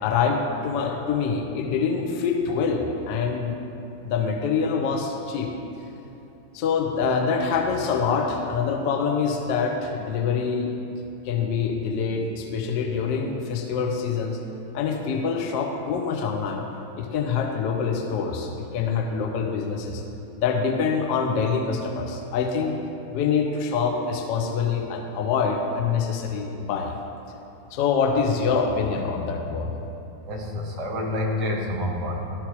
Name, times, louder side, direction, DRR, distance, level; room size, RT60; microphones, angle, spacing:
voice 1, 0.0-3.6 4.0-5.5 6.5-10.7 11.2-14.4 14.7-16.6 17.0-20.0 20.4-22.7 23.1-26.9 27.7-29.9, left 5 dB, 45° left, 1 dB, 0.8 m, -25 dB
voice 2, 30.2-32.3, left 1 dB, 35° right, -1 dB, 1.4 m, -28 dB
12.0 x 4.3 x 3.7 m, 2.8 s
figure-of-eight pair, 90°, 0 cm